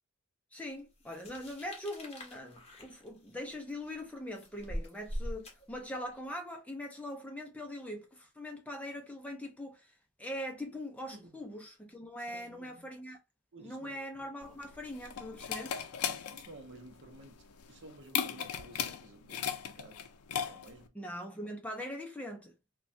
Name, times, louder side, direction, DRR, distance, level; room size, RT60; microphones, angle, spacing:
voice 1, 0.5-9.9 10.2-13.2 13.6-15.8 20.9-22.5, left 1 dB, 5° left, 0.5 m, -42 dB
sound 1, 1.0-6.2, equal, 25° left, 0.9 m, -43 dB
voice 2, 12.3-12.9 13.5-14.0 16.0-20.1 20.5-20.9, right 2 dB, 55° right, 0.7 m, -53 dB
sound 2, 14.4-20.9, left 8 dB, 90° left, 0.4 m, -37 dB
3.2 x 2.3 x 2.6 m
head